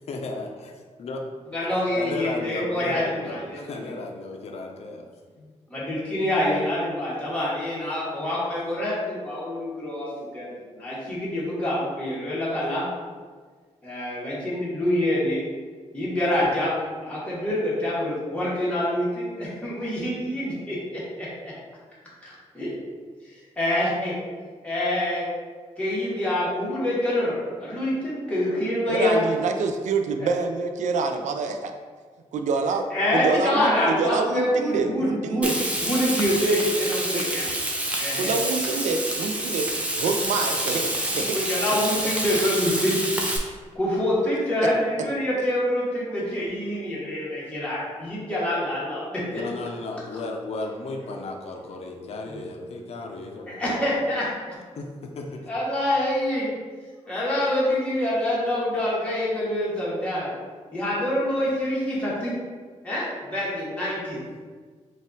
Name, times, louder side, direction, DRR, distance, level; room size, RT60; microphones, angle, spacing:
voice 1, 0.1-0.7 1.0-1.2 1.9-5.0 5.4-5.5 49.3-53.8 54.8-55.4, left 2 dB, 55° left, 2 dB, 0.5 m, -34 dB
voice 2, 1.5-3.8 5.7-10.5 10.8-12.9 13.8-15.4 15.9-21.3 22.2-22.7 23.6-24.1 24.6-25.3 25.8-29.2 32.9-35.5 35.8-37.5 38.0-38.3 41.3-43.0 43.7-49.4 53.5-54.2 55.5-56.5 57.1-60.3 60.7-62.3 62.8-64.2, left 1 dB, 10° left, -9 dB, 1.3 m, -26 dB
voice 3, 28.9-31.7 32.3-32.9 33.1-35.6 37.1-37.2 38.2-41.4, right 4 dB, 80° right, 6 dB, 0.4 m, -26 dB
Frying (food), 35.4-43.4, right 1 dB, 10° right, 0.5 m, -27 dB
4.1 x 2.4 x 3.8 m, 1.5 s
wide cardioid pair, 140°, 12 cm